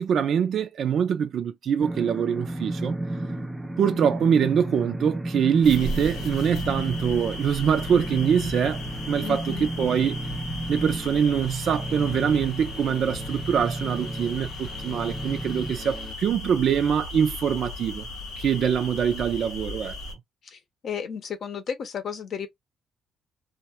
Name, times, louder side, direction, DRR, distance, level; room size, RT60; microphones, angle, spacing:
voice 1, 0.0-3.0 3.8-10.2 10.7-18.1 18.4-20.0, right 8 dB, 65° right, 0.3 m, -24 dB
sound 1, 1.8-16.1, right 1 dB, 5° right, 0.5 m, -33 dB
sound 2, 5.6-20.1, left 2 dB, 85° left, 0.9 m, -36 dB
voice 2, 9.2-9.7 20.5-22.5, left 7 dB, 60° left, 0.7 m, -33 dB
2.2 x 2.1 x 2.8 m
cardioid pair, 90°, 0 cm